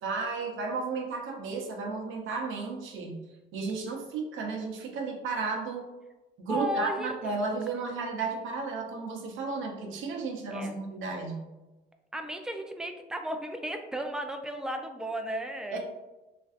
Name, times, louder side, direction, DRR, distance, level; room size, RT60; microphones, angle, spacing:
voice 1, 0.0-3.2 3.5-5.9 6.4-11.4 15.7-15.8, right 4 dB, 80° right, 1 dB, 0.7 m, -33 dB
voice 2, 6.5-7.3 10.5-10.8 12.1-15.8, equal, 5° right, 5 dB, 0.3 m, -34 dB
3.2 x 2.5 x 2.4 m, 1.1 s
cardioid pair, 90°, 20 cm